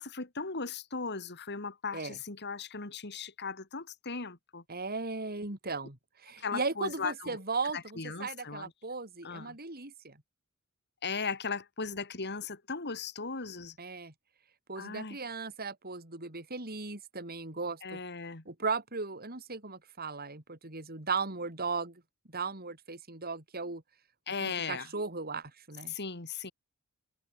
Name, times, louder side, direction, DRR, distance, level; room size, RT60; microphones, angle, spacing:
voice 1, 0.0-4.6 6.4-7.4 8.0-8.7 9.2-9.6 11.0-13.8 14.8-15.2 17.8-18.4 24.3-24.9 25.9-26.5, left 4 dB, 50° left, 2.8 m, -37 dB
voice 2, 4.7-10.2 13.8-14.1 14.7-18.0 18.4-22.0 22.3-23.8 24.4-25.9, right 4 dB, 45° right, 4.7 m, -37 dB
head